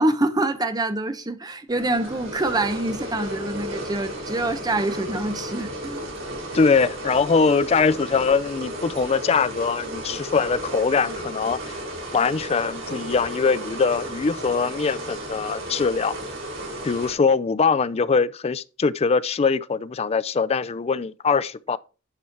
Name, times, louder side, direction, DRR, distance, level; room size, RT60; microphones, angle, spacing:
voice 1, 0.0-6.0, right 2 dB, 20° right, 0.8 m, -25 dB
sound 1, 1.7-17.1, equal, 75° right, 4.7 m, -34 dB
voice 2, 6.5-11.8 12.1-16.2 16.8-21.8, left 5 dB, 30° left, 0.4 m, -22 dB
10.5 x 4.3 x 4.6 m
head